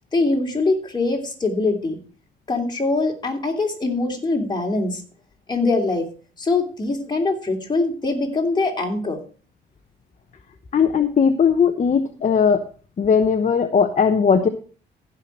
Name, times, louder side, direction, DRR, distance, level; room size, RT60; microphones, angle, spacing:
voice 1, 0.1-2.0 2.5-5.0 5.5-6.1 6.4-9.2, left 3 dB, 20° left, 0 dB, 3.0 m, -23 dB
voice 2, 10.7-12.6 13.0-14.5, left 6 dB, 40° left, 6 dB, 1.0 m, -18 dB
15.5 x 5.8 x 4.5 m, 0.39 s
cardioid pair, 90°, 20 cm